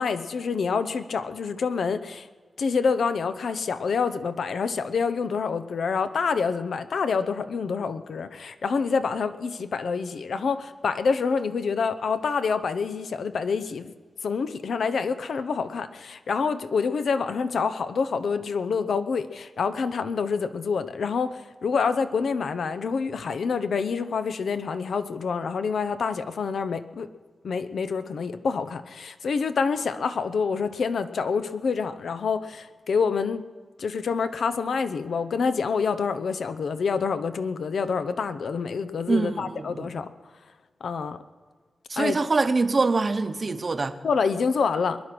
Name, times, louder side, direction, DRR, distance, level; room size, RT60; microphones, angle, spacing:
voice 1, 0.0-2.3 2.6-13.9 14.2-27.1 27.4-33.4 33.8-40.1 40.8-41.2 42.0-42.2 44.0-45.0, left 5 dB, 85° left, 11 dB, 0.8 m, -27 dB
voice 2, 39.1-39.9 41.9-44.0, right 3 dB, 40° right, 9 dB, 0.9 m, -24 dB
22.0 x 10.5 x 6.1 m, 1.5 s
wide cardioid pair, 125°, 0 cm